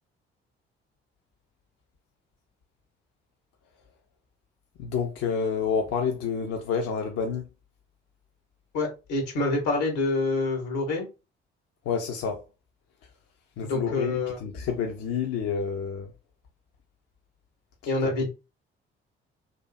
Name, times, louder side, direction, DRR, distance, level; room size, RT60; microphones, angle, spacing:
voice 1, 4.8-7.5 11.9-12.4 13.6-16.1 18.0-18.3, left 6 dB, 55° left, 0.5 m, -29 dB
voice 2, 8.7-11.1 13.6-14.4 17.9-18.3, left 3 dB, 75° left, 0.9 m, -27 dB
2.6 x 2.4 x 2.3 m
hypercardioid pair, 45°, 30 cm